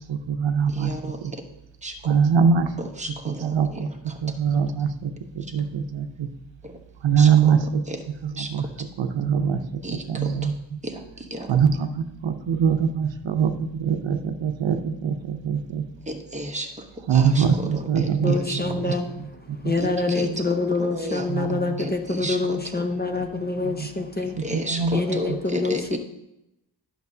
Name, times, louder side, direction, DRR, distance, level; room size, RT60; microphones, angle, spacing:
voice 1, 0.1-1.3 2.0-2.7 3.3-3.9 4.2-6.3 7.0-7.8 8.2-8.6 9.0-9.6 9.9-10.8 11.5-15.8 17.1-19.3 19.6-19.7 20.3-20.4 21.3-21.8 23.6-24.1 24.3-25.4, right 6 dB, 85° right, 7 dB, 0.7 m, -23 dB
voice 2, 0.7-1.4 1.8-2.1 3.0-4.2 4.5-4.6 6.6-6.8 7.2-7.6 7.9-8.0 8.4-8.5 9.8-10.5 10.8-11.5 16.1-18.6 19.8-20.3 20.8-21.3 21.8-22.4 24.4-26.0, right 1 dB, 15° right, 3 dB, 1.0 m, -33 dB
voice 3, 18.2-19.1 19.6-24.4 24.9-26.0, left 3 dB, 20° left, 5 dB, 0.6 m, -26 dB
10.5 x 6.2 x 2.7 m, 0.87 s
wide cardioid pair, 95°, 44 cm